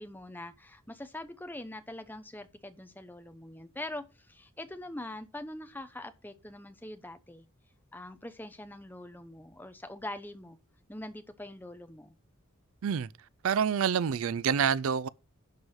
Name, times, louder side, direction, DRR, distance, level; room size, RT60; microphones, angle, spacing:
voice 1, 0.0-7.4 7.9-10.6 10.9-12.2, left 1 dB, 10° left, 0.9 m, -43 dB
voice 2, 13.4-15.1, right 7 dB, 65° right, 0.4 m, -27 dB
11.5 x 4.8 x 6.4 m
head